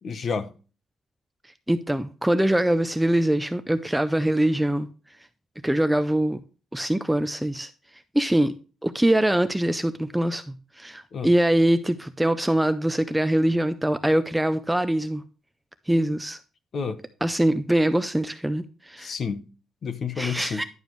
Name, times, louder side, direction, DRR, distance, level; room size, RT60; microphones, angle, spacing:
voice 1, 0.0-0.5 11.1-11.3 16.7-17.0 19.0-19.4 19.8-20.6, left 5 dB, 40° left, 0.9 m, -30 dB
voice 2, 1.7-4.9 5.6-6.4 6.7-7.7 8.1-8.5 8.8-15.2 15.9-16.4 17.2-19.1 20.2-20.6, right 1 dB, 5° right, 0.4 m, -23 dB
11.0 x 7.1 x 3.1 m
cardioid pair, 170°, 0 cm